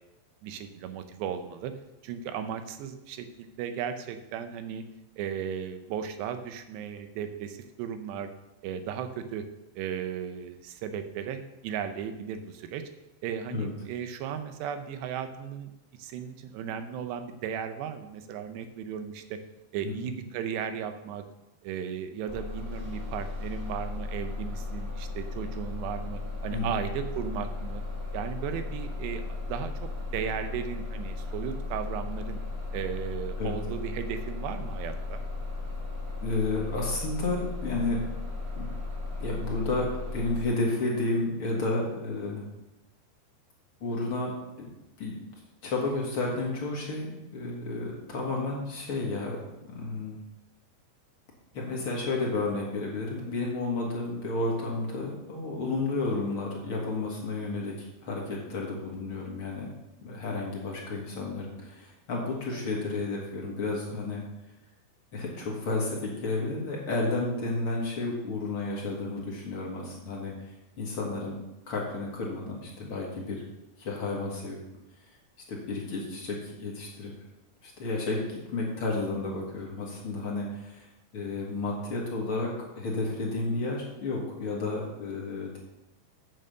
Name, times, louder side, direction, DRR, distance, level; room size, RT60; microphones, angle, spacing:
voice 1, 0.4-1.7 2.0-4.8 5.2-8.3 8.6-9.5 9.8-12.9 13.2-15.7 16.0-19.4 19.7-21.2 21.6-27.8 28.1-29.7 30.1-32.4 32.7-35.2 62.5-62.6 70.4-70.5, right 8 dB, 85° right, 8 dB, 3.0 m, -35 dB
Bus, 22.3-40.4, left 3 dB, 30° right, 3.2 m, -36 dB
voice 2, 36.2-38.0 38.6-38.7 39.2-39.9 40.1-42.4 43.8-44.3 44.6-44.7 45.0-45.2 45.6-50.2 51.5-57.7 58.0-59.7 60.0-64.2 65.1-70.3 70.8-71.4 71.7-73.4 73.8-74.6 75.5-77.1 77.6-82.5 82.7-85.6, left 3 dB, 55° left, -3 dB, 1.5 m, -31 dB
7.8 x 7.5 x 6.7 m, 0.96 s
omnidirectional pair, 4.9 m